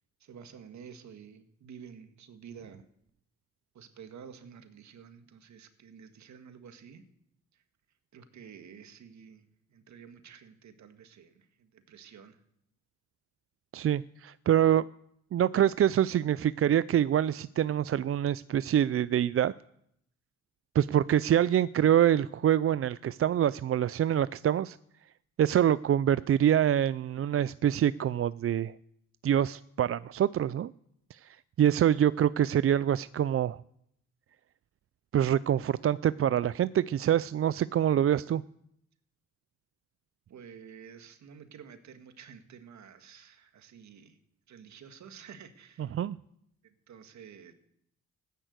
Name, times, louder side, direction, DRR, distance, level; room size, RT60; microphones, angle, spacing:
voice 1, 0.2-2.9 3.7-7.0 7.5-7.6 8.1-12.4 40.3-44.2 44.5-46.0 46.9-47.5, right 7 dB, 70° right, 8 dB, 2.0 m, -50 dB
voice 2, 13.7-14.8 15.3-19.5 20.7-24.8 25.4-28.7 29.2-30.7 31.1-31.3 31.6-33.6 35.1-38.4 45.9-46.2, right 10 dB, 50° right, 17 dB, 0.5 m, -25 dB
14.5 x 10.5 x 8.1 m, 0.75 s
supercardioid pair, 65°, 29 cm